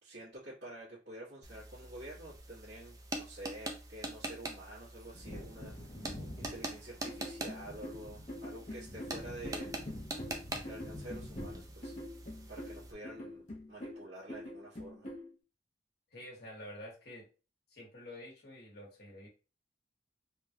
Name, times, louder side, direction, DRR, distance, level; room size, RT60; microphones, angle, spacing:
voice 1, 0.0-5.7 6.0-6.1 6.4-9.7 10.6-11.9 12.5-15.1, right 1 dB, 75° right, -11 dB, 1.4 m, -49 dB
sound 1, 1.4-12.9, right 2 dB, 20° right, 0.4 m, -44 dB
Wind / Thunder, 5.0-13.3 13.6-13.7, left 1 dB, 25° left, 0.6 m, -48 dB
sound 2, 7.1-15.3, left 1 dB, 40° left, 0.9 m, -45 dB
voice 2, 16.1-17.3 17.7-19.3, left 1 dB, 60° left, -2 dB, 1.3 m, -49 dB
3.5 x 2.3 x 2.8 m, 0.33 s
head